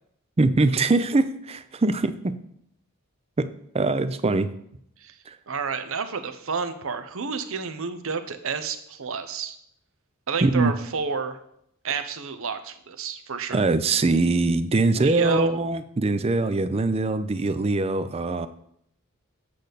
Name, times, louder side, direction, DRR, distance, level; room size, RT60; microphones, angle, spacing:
voice 1, 0.4-2.3 3.4-3.5 3.7-4.5 5.3-5.4 10.4-10.7 13.5-18.5, right 3 dB, 25° right, 12 dB, 0.4 m, -22 dB
voice 2, 5.5-9.6 10.3-11.4 11.8-13.7 14.9-15.5, right 5 dB, 65° right, 10 dB, 0.8 m, -30 dB
8.5 x 6.6 x 4.1 m, 0.71 s
head